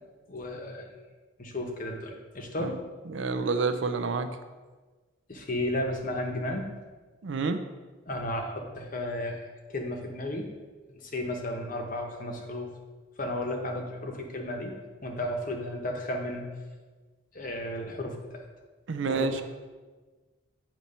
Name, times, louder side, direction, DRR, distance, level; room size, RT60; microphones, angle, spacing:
voice 1, 0.3-0.9 1.4-2.8 5.3-6.7 8.1-9.4 9.7-10.5 10.9-12.7 13.2-14.8 15.0-16.5 17.3-18.4 19.0-19.4, left 1 dB, 40° left, 2 dB, 0.8 m, -33 dB
voice 2, 3.1-4.4 7.2-7.6 18.9-19.4, right 4 dB, 70° right, 8 dB, 0.5 m, -29 dB
8.7 x 2.9 x 5.4 m, 1.3 s
head